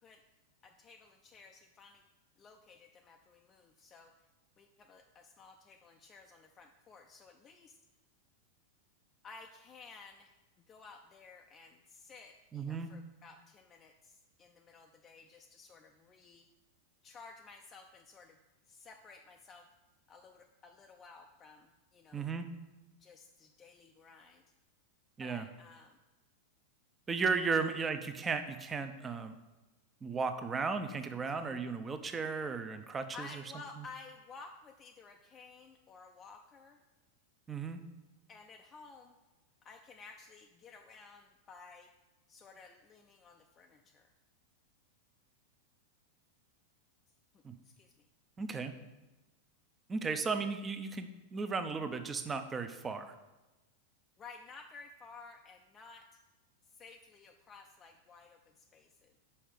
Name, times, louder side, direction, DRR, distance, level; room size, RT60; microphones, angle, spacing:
voice 1, 0.6-2.0 2.4-4.1 4.6-7.8 9.2-16.5 17.0-18.4 18.7-19.7 20.1-22.3 23.0-24.4 25.2-26.0 27.5-27.6 33.1-36.8 38.3-39.1 39.6-41.9 42.3-44.1 47.3-48.1 54.2-56.2 56.6-59.1, left 4 dB, 25° left, 3 dB, 0.5 m, -54 dB
voice 2, 12.5-12.9 22.1-22.5 25.2-25.5 27.1-29.3 30.0-33.4 33.8-33.9 37.5-37.8 47.4-47.5 48.4-48.7 49.9-53.1, right 4 dB, 20° right, 8 dB, 0.6 m, -35 dB
5.7 x 5.4 x 6.5 m, 1.1 s
figure-of-eight pair, 90°, 0 cm